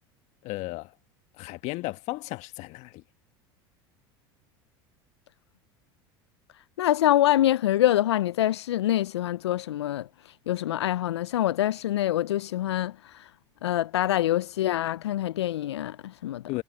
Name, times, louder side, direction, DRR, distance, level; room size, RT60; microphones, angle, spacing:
voice 1, 0.4-0.9 1.4-3.0 16.5-16.6, left 20 dB, 55° left, 1.6 m, -34 dB
voice 2, 6.5-13.3 13.6-16.4, left 13 dB, 85° left, 0.4 m, -25 dB
hypercardioid pair, 80°, 14 cm